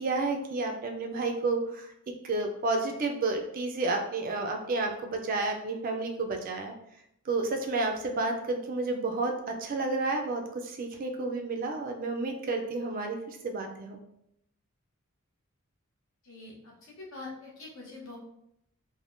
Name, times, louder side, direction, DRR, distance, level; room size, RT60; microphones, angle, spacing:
voice 1, 0.0-1.9 2.2-6.7 7.3-14.0, right 3 dB, 40° right, 3 dB, 0.3 m, -31 dB
voice 2, 16.2-18.2, left 3 dB, 65° left, -3 dB, 0.9 m, -44 dB
3.4 x 2.1 x 2.5 m, 0.76 s
head